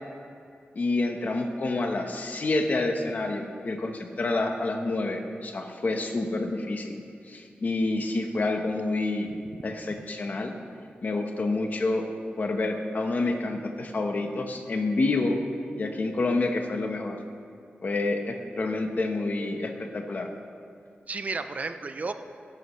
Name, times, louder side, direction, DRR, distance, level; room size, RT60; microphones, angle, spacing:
voice 1, 0.7-6.9 7.3-9.3 9.6-10.5 11.0-12.1 12.4-15.4 15.8-17.2 17.8-20.3, left 2 dB, 45° left, 4 dB, 1.1 m, -28 dB
voice 2, 9.3-10.0 21.1-22.1, right 3 dB, 40° right, 9 dB, 0.5 m, -34 dB
16.5 x 12.5 x 3.2 m, 2.3 s
wide cardioid pair, 160°, 4 cm